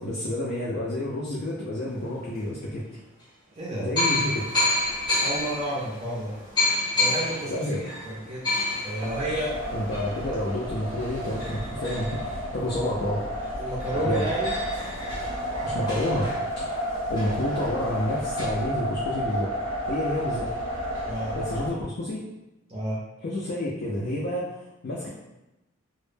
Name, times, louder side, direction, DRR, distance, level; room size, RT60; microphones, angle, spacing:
voice 1, 0.0-2.9 3.8-4.4 7.5-7.9 9.7-13.2 13.9-14.3 15.6-16.8 17.1-19.5 19.9-20.5 21.3-22.2 23.2-25.1, left 1 dB, 50° left, -4 dB, 0.4 m, -29 dB
sound 1, 2.2-2.3 3.2-3.3 4.0-13.1 13.5-13.6 13.8-18.4, left 2 dB, 20° left, 0.7 m, -30 dB
voice 2, 3.5-3.9 5.2-6.3 7.0-8.5 8.8-9.6 13.6-14.5 21.0-21.3 22.7-23.0, right 1 dB, 25° right, -7 dB, 0.5 m, -31 dB
sound 2, 9.0-21.7, equal, 70° right, 0.6 m, -31 dB
2.0 x 2.0 x 3.1 m, 0.96 s
head